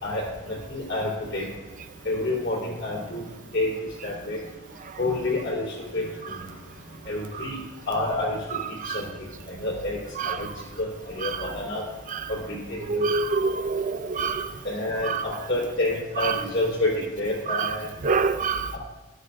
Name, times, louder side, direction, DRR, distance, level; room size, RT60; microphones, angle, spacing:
voice 1, 0.0-1.4 2.1-3.2 3.5-3.7 4.0-4.4 5.0-6.1 7.1-7.6 7.9-8.6 8.9-9.1 9.5-10.0 10.2-10.5 10.8-11.8 12.3-13.1 14.6-17.9 18.7-18.8, left 2 dB, 65° left, 3.5 m, -28 dB
voice 2, 12.9-13.8 14.2-14.4 15.1-15.2 17.5-17.7 18.0-18.6, right 4 dB, 40° right, 0.4 m, -24 dB
13.0 x 11.5 x 2.5 m
head